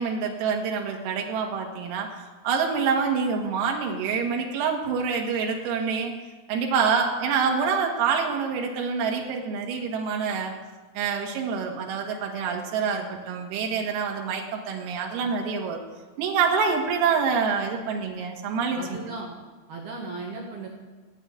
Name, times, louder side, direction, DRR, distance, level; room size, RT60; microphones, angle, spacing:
voice 1, 0.0-2.1 2.4-6.1 6.5-10.5 11.0-15.8 16.2-19.0, right 5 dB, 85° right, 1 dB, 4.6 m, -26 dB
voice 2, 18.7-19.3 19.7-20.7, right 3 dB, 60° right, -2 dB, 3.4 m, -36 dB
17.0 x 9.2 x 8.2 m, 1.3 s
omnidirectional pair, 5.9 m